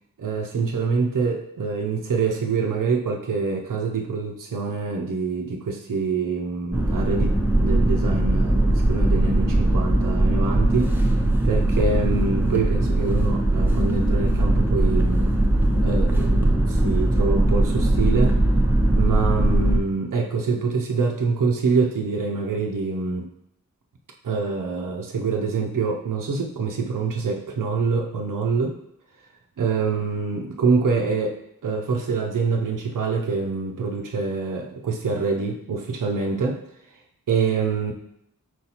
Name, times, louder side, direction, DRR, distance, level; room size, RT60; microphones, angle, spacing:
voice 1, 0.2-10.9 11.4-15.4 15.8-18.4 19.0-23.3 24.2-28.8 29.6-36.6 37.3-37.9, right 4 dB, 75° right, 1 dB, 0.6 m, -25 dB
sound 1, 6.7-19.8, right 1 dB, 5° right, 0.6 m, -20 dB
4.5 x 4.1 x 2.8 m, 0.76 s
wide cardioid pair, 65°, 33 cm